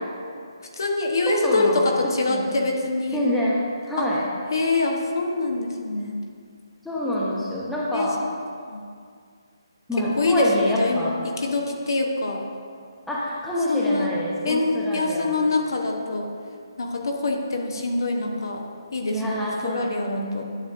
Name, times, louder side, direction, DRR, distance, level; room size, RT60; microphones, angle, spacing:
voice 1, 0.7-3.2 4.0-4.1 4.5-6.2 7.9-8.1 8.7-8.8 10.0-12.4 13.7-14.1 14.4-16.3 16.8-18.6 18.9-20.4, left 2 dB, 55° left, 2 dB, 0.9 m, -25 dB
voice 2, 1.3-2.5 3.1-3.6 3.9-4.2 6.8-8.2 9.9-11.2 13.1-15.4 19.1-20.4, left 1 dB, 5° left, -7 dB, 1.0 m, -26 dB
10.5 x 6.3 x 2.5 m, 2.2 s
figure-of-eight pair, 145°, 2 cm